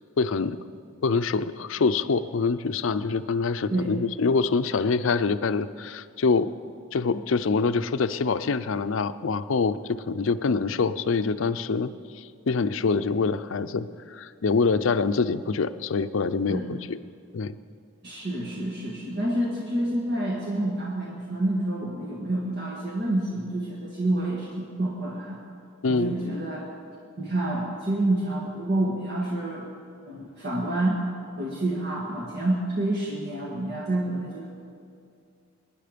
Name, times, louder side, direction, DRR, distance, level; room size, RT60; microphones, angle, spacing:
voice 1, 0.2-0.6 1.0-6.5 6.9-11.9 12.1-17.0 17.3-17.6 25.8-26.1, left 4 dB, 65° left, 13 dB, 0.5 m, -25 dB
voice 2, 18.0-25.4 25.9-26.7 27.2-29.7 30.1-31.0 31.4-34.5, right 1 dB, 55° right, -3 dB, 1.8 m, -28 dB
23.0 x 10.0 x 5.1 m, 2.3 s
head